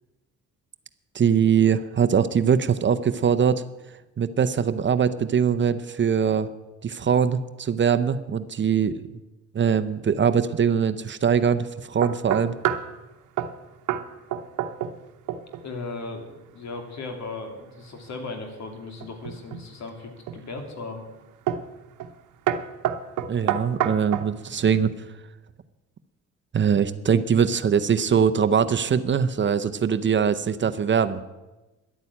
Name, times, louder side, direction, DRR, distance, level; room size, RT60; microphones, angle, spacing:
voice 1, 1.1-3.6 4.2-6.5 6.8-9.0 9.5-12.6 23.3-24.9 26.5-31.2, right 7 dB, 40° right, 11 dB, 0.7 m, -22 dB
sound 1, 12.0-12.9 13.4-13.6 13.9-14.1 14.3-15.0 15.3-15.7 19.0-19.7 20.3-20.7 21.5-21.7 22.0-22.2 22.5-24.3, right 10 dB, 80° right, 1.0 m, -27 dB
voice 2, 15.6-21.1, left 3 dB, 65° left, 4 dB, 2.8 m, -37 dB
11.5 x 9.0 x 8.6 m, 1.1 s
cardioid pair, 90°, 30 cm